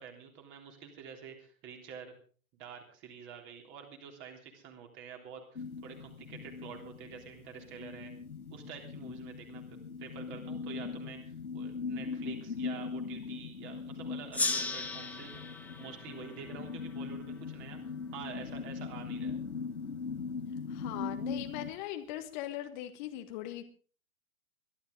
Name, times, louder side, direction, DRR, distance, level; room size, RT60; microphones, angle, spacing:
voice 1, 0.0-2.1 2.5-8.1 8.5-9.6 10.0-15.4 15.8-17.8 18.1-19.4, right 7 dB, 25° right, 3 dB, 3.4 m, -48 dB
sound 1, 5.6-21.7, left 5 dB, 85° left, 1.6 m, -40 dB
Gong, 14.3-17.5, left 3 dB, 5° left, 1.4 m, -37 dB
voice 2, 20.7-23.6, left 13 dB, 35° left, 6 dB, 1.5 m, -40 dB
21.5 x 12.5 x 3.9 m, 0.41 s
figure-of-eight pair, 115°, 42 cm